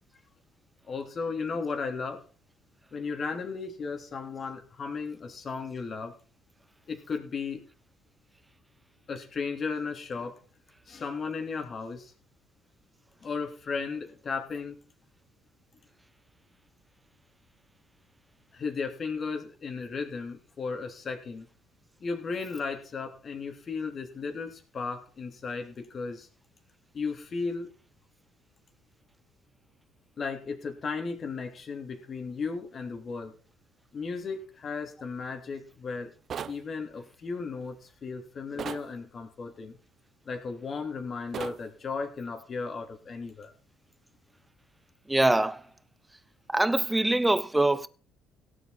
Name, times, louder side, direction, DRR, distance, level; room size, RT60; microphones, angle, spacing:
voice 1, 0.9-2.2 2.9-6.1 6.9-7.6 9.1-10.3 10.9-12.1 13.2-14.8 18.5-21.5 22.0-26.3 26.9-27.7 30.2-33.3 33.9-36.1 36.5-39.8 40.2-43.5, left 4 dB, 45° left, 3.4 m, -35 dB
sound 1, 36.3-36.6 38.6-38.9 41.3-41.6, right 8 dB, 50° right, 0.6 m, -36 dB
voice 2, 45.1-45.7 46.5-47.9, right 2 dB, 10° right, 1.1 m, -24 dB
17.0 x 8.0 x 4.3 m
hypercardioid pair, 55°, 0 cm